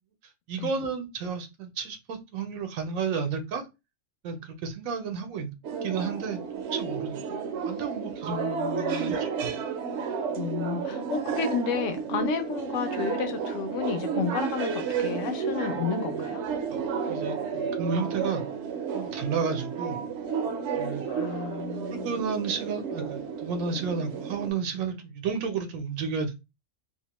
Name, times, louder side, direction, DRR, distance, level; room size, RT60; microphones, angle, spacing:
voice 1, 0.5-3.6 4.2-5.5 5.8-7.2 7.6-8.4 8.7-9.5 16.7-16.8 17.1-18.4 18.9-20.0 20.8-21.0 21.9-26.3, right 5 dB, 90° right, 1.0 m, -32 dB
sound 1, 5.6-24.5, right 6 dB, 65° right, 0.8 m, -32 dB
voice 2, 8.3-9.2 10.4-16.4 21.1-22.2, left 7 dB, 70° left, 0.9 m, -32 dB
2.7 x 2.1 x 2.9 m
omnidirectional pair, 1.4 m